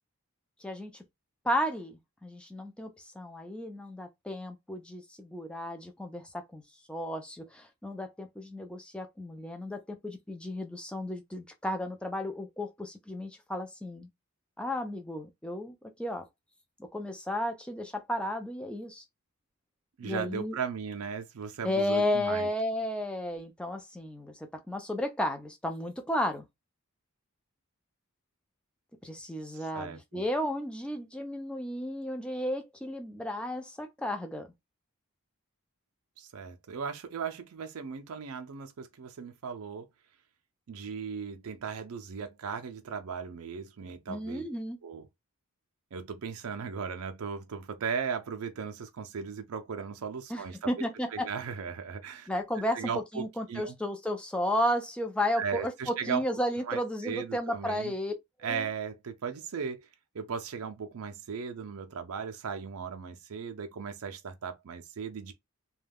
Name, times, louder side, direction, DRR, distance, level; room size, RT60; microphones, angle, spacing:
voice 1, 0.6-1.0 1.4-2.9 3.1-6.6 6.9-14.1 14.6-16.2 16.9-19.0 20.0-20.6 21.6-26.4 29.0-34.5 44.1-44.8 50.3-51.3 52.3-58.1 58.5-58.7, left 1 dB, 5° left, 0.4 m, -33 dB
voice 2, 20.0-22.5 29.5-30.2 36.2-39.9 40.7-44.4 44.8-45.1 45.9-50.7 51.1-52.3 52.7-53.7 55.4-56.2 56.7-57.9 58.4-59.9 60.1-65.3, right 6 dB, 75° right, 0.4 m, -37 dB
2.3 x 2.2 x 3.3 m
head